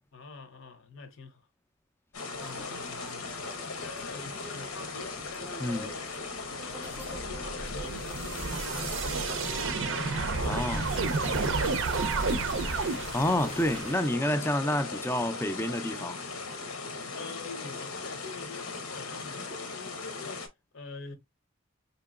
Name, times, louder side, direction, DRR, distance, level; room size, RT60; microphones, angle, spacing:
voice 1, 0.1-1.4 2.4-3.4 3.8-6.1 6.4-9.8 10.3-12.2 13.0-13.1 17.1-20.5 20.7-21.2, left 4 dB, 60° left, 0.7 m, -46 dB
sound 1, 2.1-20.5, left 4 dB, 90° left, 1.0 m, -38 dB
sound 2, 2.3-13.9, right 2 dB, 10° right, 0.7 m, -47 dB
sound 3, 7.0-14.1, right 4 dB, 60° right, 0.5 m, -31 dB
voice 2, 10.4-10.8 13.1-16.2, left 1 dB, 10° left, 0.4 m, -28 dB
4.5 x 2.9 x 2.3 m
head